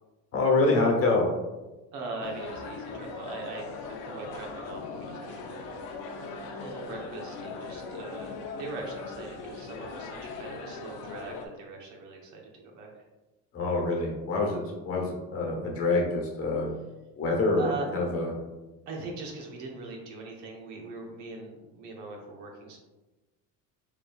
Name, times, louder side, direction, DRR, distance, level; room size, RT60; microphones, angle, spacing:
voice 1, 0.3-1.2 13.5-16.7 17.2-18.3, left 3 dB, 40° left, 0 dB, 1.1 m, -26 dB
voice 2, 1.9-13.0 15.0-15.1 17.6-17.9 18.9-22.8, right 3 dB, 55° right, 0 dB, 1.0 m, -41 dB
sound 1, 2.2-11.5, left 4 dB, 60° left, 0.7 m, -40 dB
5.0 x 3.3 x 2.4 m, 1.1 s
cardioid pair, 140°, 35 cm